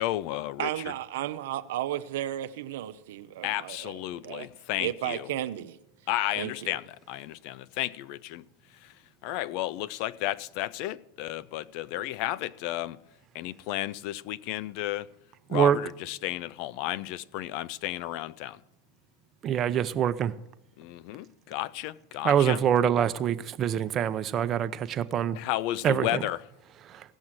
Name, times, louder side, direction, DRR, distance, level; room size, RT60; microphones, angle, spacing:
voice 1, 0.0-0.7 3.4-5.3 6.1-6.8 7.1-8.4 8.8-8.9 9.2-13.0 13.3-15.1 15.5-18.6 20.8-22.6 25.3-26.5, left 15 dB, 60° left, 0.5 m, -33 dB
voice 2, 0.6-4.5 4.8-5.8 6.4-6.8, right 13 dB, 75° right, 0.6 m, -34 dB
voice 3, 19.4-20.3 22.2-25.4 25.8-26.1, right 9 dB, 35° right, 0.7 m, -24 dB
16.5 x 6.2 x 7.5 m
hypercardioid pair, 105°, 0 cm